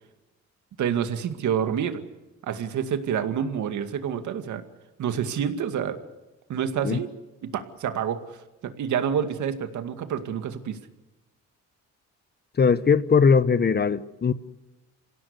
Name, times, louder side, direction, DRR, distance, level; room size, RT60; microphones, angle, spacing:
voice 1, 0.8-2.0 2.4-4.6 5.0-6.0 6.5-7.1 7.4-8.2 8.6-10.8, right 8 dB, 75° right, 2.2 m, -28 dB
voice 2, 12.6-14.3, left 5 dB, 35° left, 1.1 m, -20 dB
26.5 x 17.0 x 8.2 m
cardioid pair, 90°, 30 cm